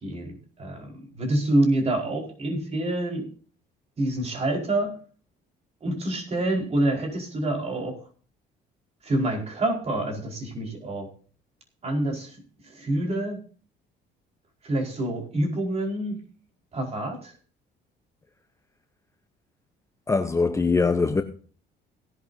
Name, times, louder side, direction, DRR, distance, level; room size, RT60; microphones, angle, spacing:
voice 1, 0.0-3.3 4.0-5.0 5.8-8.0 9.0-11.1 11.8-13.4 14.6-16.2 16.7-17.3, right 1 dB, 35° right, 4.7 m, -27 dB
voice 2, 20.1-21.2, left 4 dB, 15° left, 0.8 m, -22 dB
18.0 x 11.0 x 2.8 m
cardioid pair, 125°, 19 cm